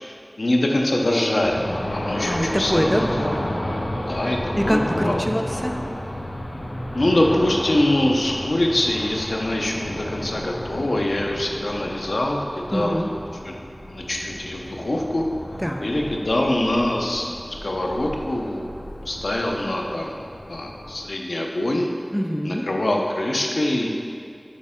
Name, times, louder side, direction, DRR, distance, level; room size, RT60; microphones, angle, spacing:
voice 1, 0.0-3.1 4.1-5.2 7.0-13.1 13.4-13.5 13.9-15.2 15.8-17.3 17.6-18.7 19.1-21.9 22.4-23.9, left 1 dB, 90° left, 1 dB, 0.6 m, -24 dB
sound 1, 1.4-21.1, left 1 dB, 70° left, 0.9 m, -32 dB
voice 2, 2.3-3.5 4.5-5.7 12.7-13.1 15.6-15.9 22.1-22.7, equal, ahead, 3 dB, 0.5 m, -24 dB
6.5 x 5.1 x 3.7 m, 2.4 s
wide cardioid pair, 50°, 0 cm